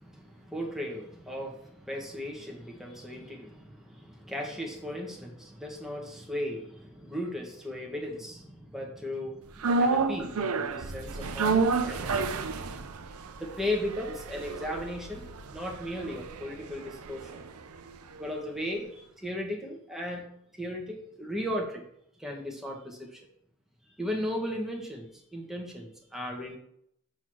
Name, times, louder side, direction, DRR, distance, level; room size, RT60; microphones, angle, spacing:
voice 1, 0.0-9.5 9.8-12.6 13.4-17.4 18.2-20.3 20.6-21.8 22.2-23.2 23.9-26.6, left 1 dB, ahead, -1 dB, 1.3 m, -36 dB
sound 1, 9.6-17.9 18.2-18.3, right 4 dB, 85° right, 0.6 m, -30 dB
6.2 x 3.9 x 6.1 m, 0.72 s
head